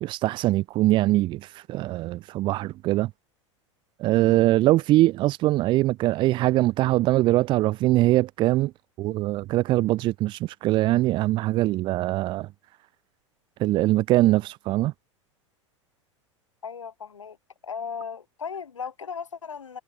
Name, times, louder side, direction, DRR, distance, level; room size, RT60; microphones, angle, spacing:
voice 1, 0.0-3.1 4.0-8.7 9.0-12.5 13.6-14.9, right 17 dB, 30° right, 0.5 m, -22 dB
voice 2, 16.6-17.4 17.6-19.8, left 6 dB, 75° left, 4.3 m, -36 dB
figure-of-eight pair, 85°, 16 cm